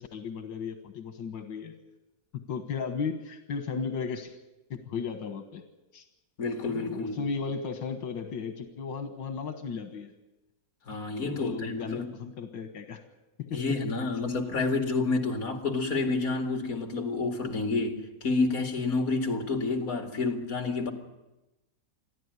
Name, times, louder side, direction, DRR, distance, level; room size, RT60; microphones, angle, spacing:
voice 1, 0.0-1.8 2.3-4.4 4.7-5.6 5.9-6.1 6.7-10.1 11.2-13.0 13.4-13.8, left 5 dB, 80° left, 2.0 m, -35 dB
voice 2, 6.4-7.2 10.9-12.1 13.5-20.9, left 3 dB, 50° left, 2.7 m, -29 dB
28.5 x 11.0 x 9.6 m
omnidirectional pair, 1.9 m